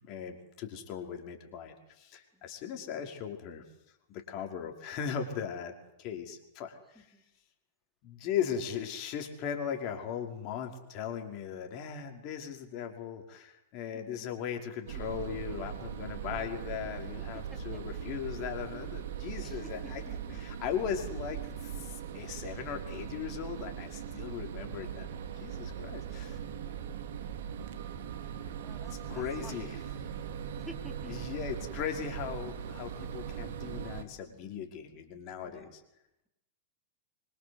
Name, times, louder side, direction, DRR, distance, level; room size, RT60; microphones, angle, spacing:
voice 1, 0.0-3.6 4.1-7.1 8.0-20.0 20.3-25.1 25.4-26.4 28.9-29.8 31.1-35.8, left 8 dB, 45° left, 4 dB, 5.4 m, -38 dB
voice 2, 13.9-14.3 15.0-15.1 17.3-17.8 19.4-20.4 26.7-26.9 28.6-29.8 30.6-31.2 35.4-35.8, right 1 dB, ahead, 4 dB, 4.6 m, -51 dB
sound 1, 14.9-34.0, right 8 dB, 65° right, 2.8 m, -40 dB
26.5 x 25.0 x 8.2 m, 0.87 s
hypercardioid pair, 105°, 0 cm